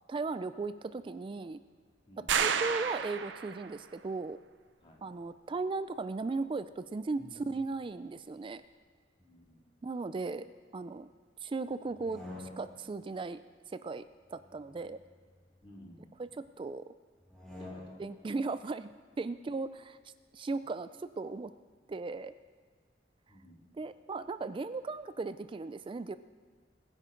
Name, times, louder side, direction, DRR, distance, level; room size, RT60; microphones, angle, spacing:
voice 1, 0.1-1.6 2.2-4.4 5.0-8.6 9.8-10.5 10.7-11.1 11.4-13.4 13.7-14.0 14.3-15.0 16.2-16.8 18.0-18.9 19.2-20.0 20.3-21.5 21.9-22.3 23.8-26.2, right 3 dB, 30° right, 13 dB, 0.3 m, -37 dB
sound 1, 2.3-3.8, right 7 dB, 85° right, 0.6 m, -31 dB
voice 2, 7.2-7.5 9.2-9.6 15.6-16.1 17.6-18.0 23.3-23.6, equal, 30° left, -2 dB, 2.4 m, -54 dB
sound 2, 11.9-13.0 14.2-15.9 17.2-18.2, left 2 dB, 5° left, 3.8 m, -49 dB
21.0 x 9.9 x 3.8 m, 1.5 s
head